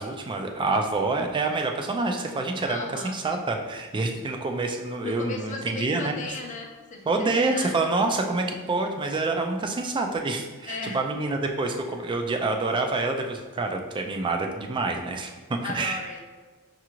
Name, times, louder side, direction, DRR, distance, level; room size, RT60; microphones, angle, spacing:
voice 1, 0.0-6.1 7.1-16.0, right 3 dB, 20° right, 4 dB, 0.3 m, -27 dB
voice 2, 2.6-3.1 5.0-7.8 10.6-11.0 15.2-16.2, left 3 dB, 35° left, 1 dB, 0.5 m, -36 dB
5.6 x 2.5 x 2.9 m, 1.3 s
head